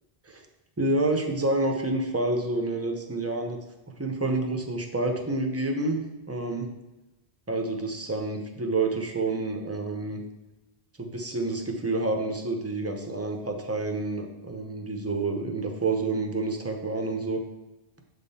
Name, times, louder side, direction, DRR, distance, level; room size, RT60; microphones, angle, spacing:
voice 1, 0.8-3.6 4.0-6.0 6.3-6.7 7.5-10.2 11.0-17.4, right 2 dB, 20° right, 3 dB, 0.5 m, -28 dB
6.7 x 3.7 x 4.1 m, 1.0 s
omnidirectional pair, 1.0 m